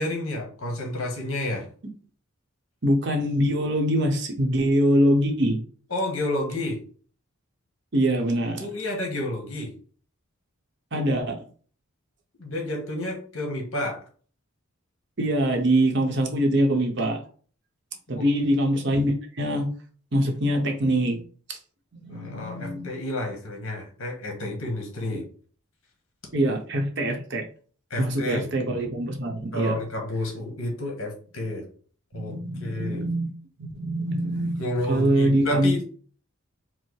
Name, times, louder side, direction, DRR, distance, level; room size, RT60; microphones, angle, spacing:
voice 1, 0.0-1.6 5.9-6.8 8.6-9.7 12.4-14.0 18.1-18.3 22.1-25.3 27.9-28.5 29.5-31.6 32.1-32.3 32.6-33.0 34.6-35.9, left 1 dB, 70° left, 1 dB, 1.4 m, -30 dB
voice 2, 2.8-5.6 7.9-8.7 10.9-11.4 15.2-17.2 18.1-19.7 20.1-21.2 21.5-21.6 21.9-22.9 25.1-25.2 26.3-27.4 28.0-29.8 32.1-33.3 33.6-35.7, right 1 dB, 50° right, 3 dB, 0.9 m, -24 dB
4.5 x 2.1 x 4.6 m, 0.43 s
head